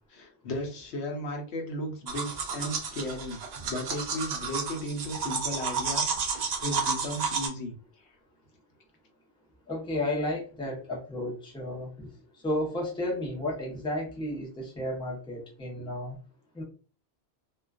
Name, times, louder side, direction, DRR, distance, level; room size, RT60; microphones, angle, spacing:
voice 1, 0.1-3.4 3.7-7.7, left 1 dB, 85° left, 2 dB, 0.9 m, -35 dB
sound 1, 2.1-7.5, right 5 dB, 55° right, 0.5 m, -31 dB
voice 2, 9.7-12.1 12.4-16.2 16.5-16.6, left 1 dB, 5° left, -2 dB, 0.5 m, -32 dB
2.3 x 2.2 x 2.3 m, 0.38 s
omnidirectional pair, 1.1 m